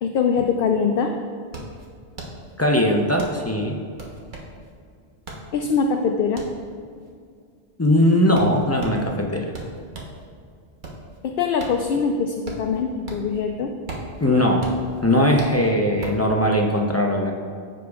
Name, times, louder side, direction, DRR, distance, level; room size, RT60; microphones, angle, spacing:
voice 1, 0.0-1.1 5.5-6.4 11.2-13.7, left 5 dB, 65° left, 3 dB, 0.7 m, -22 dB
sound 1, 1.5-10.2 10.6-13.4 13.7-16.3, right 2 dB, 50° right, 1.2 m, -38 dB
voice 2, 2.6-3.8 7.8-9.5 14.2-14.7 15.0-17.3, left 1 dB, 20° left, 1 dB, 0.5 m, -19 dB
14.5 x 5.0 x 2.4 m, 2.2 s
omnidirectional pair, 1.1 m